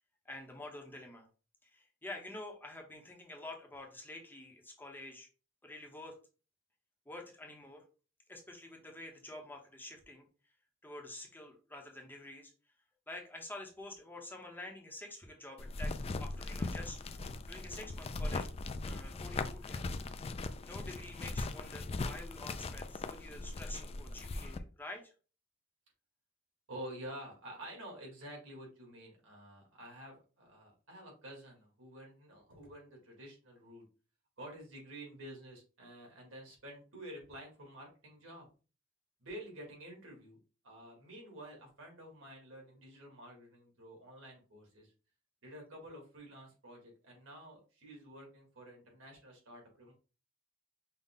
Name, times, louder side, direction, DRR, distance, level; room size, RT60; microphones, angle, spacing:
voice 1, 0.2-1.3 1.6-5.3 5.6-6.2 7.1-7.8 8.3-10.3 10.8-12.5 13.1-15.9 16.2-18.5 18.8-19.8 20.6-25.1, left 2 dB, 10° left, 1 dB, 0.9 m, -48 dB
sound 1, 15.6-24.6, left 3 dB, 30° left, 0.3 m, -39 dB
voice 2, 26.7-33.8 34.4-38.5 39.2-40.4 40.6-44.9 45.4-49.9, right 1 dB, 80° right, 0 dB, 2.1 m, -50 dB
5.6 x 2.3 x 3.7 m, 0.35 s
head